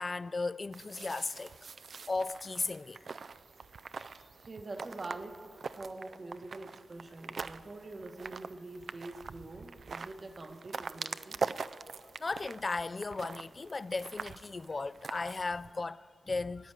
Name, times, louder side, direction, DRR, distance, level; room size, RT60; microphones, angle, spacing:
voice 1, 0.0-1.5 2.1-3.0 12.2-16.7, left 3 dB, 35° left, 0.3 m, -36 dB
sound 1, 0.7-15.7, right 5 dB, 60° right, 0.3 m, -43 dB
voice 2, 4.5-5.5 5.8-11.4, right 2 dB, 35° right, 1.0 m, -45 dB
15.0 x 9.4 x 8.6 m
wide cardioid pair, 105°, 0 cm